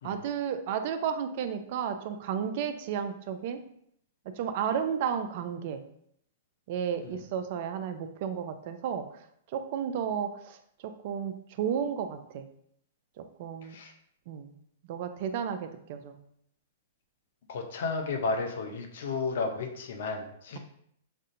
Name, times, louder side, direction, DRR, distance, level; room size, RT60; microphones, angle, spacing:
voice 1, 0.0-3.6 4.3-5.8 6.7-12.5 13.2-13.8 14.3-14.5 14.9-16.2, right 8 dB, 55° right, 9 dB, 0.4 m, -33 dB
voice 2, 13.6-13.9 17.5-20.6, left 4 dB, 65° left, 4 dB, 0.6 m, -33 dB
5.3 x 2.5 x 2.5 m, 0.70 s
hypercardioid pair, 115°, 0 cm